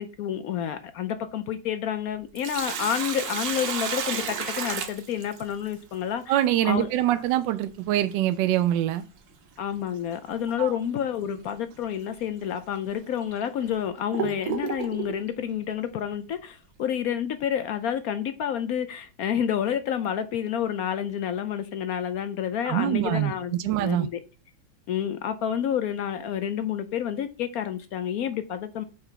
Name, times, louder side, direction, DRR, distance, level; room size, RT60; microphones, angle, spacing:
voice 1, 0.0-6.3 6.6-7.2 9.6-24.2 24.9-28.8, left 9 dB, 70° left, 0.8 m, -29 dB
Sink (filling or washing), 2.1-5.7 8.1-8.2 10.1-10.3 10.8-10.9 11.7-11.9 12.5-12.6 13.3-15.2, right 7 dB, 60° right, 1.4 m, -32 dB
voice 2, 6.3-9.0 10.6-10.7 22.6-24.1, right 13 dB, 75° right, 1.2 m, -24 dB
7.1 x 3.3 x 5.7 m
omnidirectional pair, 2.1 m